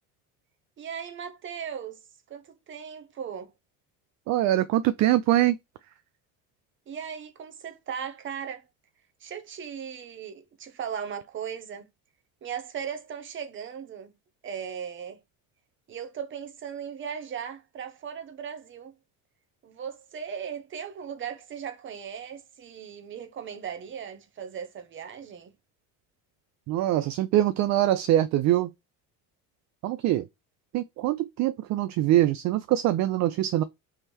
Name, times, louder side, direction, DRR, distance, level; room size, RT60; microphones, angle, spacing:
voice 1, 0.8-2.0 2.3-3.5 6.9-8.7 9.2-11.9 12.4-14.1 14.4-15.2 15.9-18.9 19.6-25.5, right 7 dB, 35° right, 0.9 m, -37 dB
voice 2, 4.3-5.6 26.7-28.7 29.8-30.3 30.7-33.6, right 13 dB, 55° right, 0.5 m, -23 dB
3.6 x 3.2 x 4.3 m
cardioid pair, 150°, 35 cm